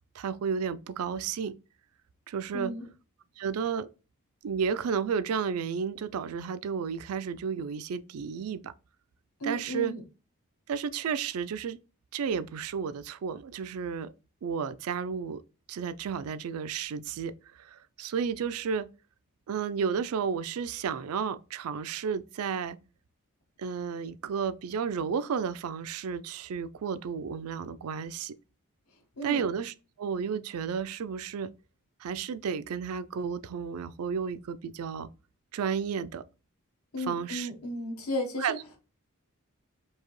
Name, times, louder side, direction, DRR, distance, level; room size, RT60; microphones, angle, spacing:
voice 1, 0.1-1.5 2.3-2.7 3.4-3.9 4.4-8.7 9.4-9.9 10.7-11.8 12.1-14.1 14.4-15.4 15.7-17.3 17.6-18.9 19.5-22.8 23.6-28.3 29.2-31.5 32.0-35.1 35.5-36.2 37.0-37.5 38.4-38.6, right 6 dB, 80° right, 0.4 m, -32 dB
voice 2, 2.5-2.9 9.4-10.0 29.2-29.4 36.9-38.6, left 1 dB, 85° left, 1.2 m, -34 dB
4.6 x 2.8 x 3.0 m
head